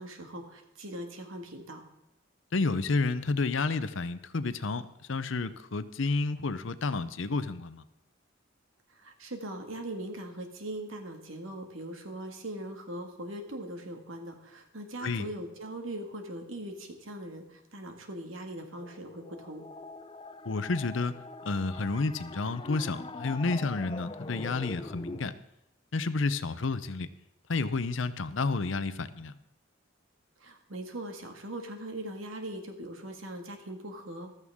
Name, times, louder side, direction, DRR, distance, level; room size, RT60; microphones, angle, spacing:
voice 1, 0.0-1.8 8.9-19.6 30.4-34.3, right 1 dB, 85° right, 4 dB, 2.0 m, -40 dB
voice 2, 2.5-7.8 15.0-15.3 20.4-21.2 21.4-25.3 25.9-27.1 27.5-29.3, left 3 dB, 70° left, 13 dB, 0.7 m, -30 dB
sound 1, 18.8-25.3, left 2 dB, 25° left, 0.5 m, -43 dB
14.5 x 13.0 x 3.6 m, 0.84 s
head